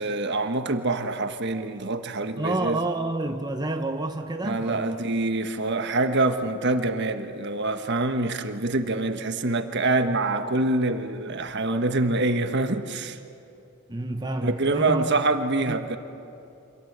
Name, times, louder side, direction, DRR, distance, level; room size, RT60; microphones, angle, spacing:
voice 1, 0.0-2.8 4.4-13.2 14.4-16.0, right 2 dB, 55° right, 8 dB, 1.4 m, -25 dB
voice 2, 2.4-5.0 13.9-15.2 15.7-16.0, right 2 dB, 20° right, 5 dB, 1.0 m, -29 dB
28.0 x 25.5 x 8.1 m, 2.8 s
head